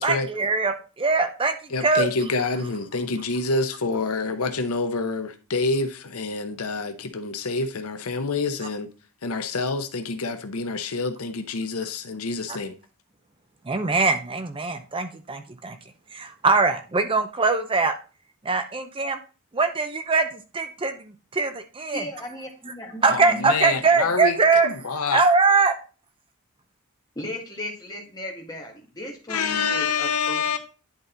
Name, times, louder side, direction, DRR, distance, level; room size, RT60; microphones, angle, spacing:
voice 1, 0.0-1.5 1.8-2.1 13.7-15.8 16.1-17.9 18.4-19.2 19.5-22.1 23.0-24.7 25.1-25.7, right 4 dB, 25° right, 0.5 m, -22 dB
voice 2, 1.7-8.9 9.2-12.7 23.1-25.2 29.3-30.6, left 4 dB, 80° left, 0.9 m, -27 dB
voice 3, 21.9-23.5 27.2-30.6, left 1 dB, 20° left, 1.8 m, -36 dB
10.5 x 4.1 x 3.9 m
head